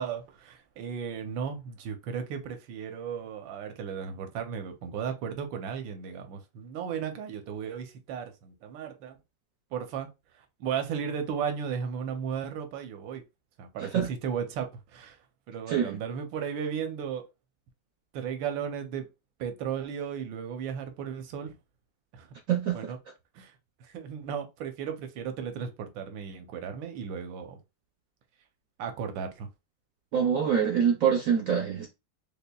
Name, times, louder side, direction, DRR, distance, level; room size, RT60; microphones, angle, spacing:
voice 1, 0.0-9.2 9.7-10.1 10.3-13.2 13.6-15.2 15.5-17.2 18.1-19.1 19.4-21.5 22.1-22.3 22.7-23.0 23.3-27.6 28.8-29.5, right 7 dB, 90° right, 1.4 m, -35 dB
voice 2, 22.5-22.8 30.1-31.9, right 8 dB, 65° right, 0.8 m, -25 dB
5.2 x 2.2 x 2.2 m
omnidirectional pair, 2.0 m